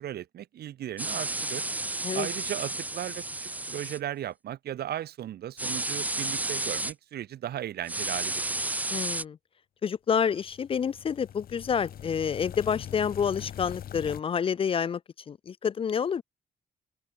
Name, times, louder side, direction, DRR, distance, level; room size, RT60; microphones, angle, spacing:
voice 1, 0.0-1.6 2.1-8.6, right 11 dB, 75° right, 1.8 m, -36 dB
sound 1, 1.0-4.0 5.6-6.9 7.9-9.2, right 2 dB, 10° right, 0.9 m, -32 dB
voice 2, 8.9-9.4 9.8-15.0 15.3-16.2, left 7 dB, 35° left, 0.5 m, -28 dB
sound 2, 10.3-14.2, left 10 dB, 65° left, 2.7 m, -42 dB
open air
wide cardioid pair, 175°, 17 cm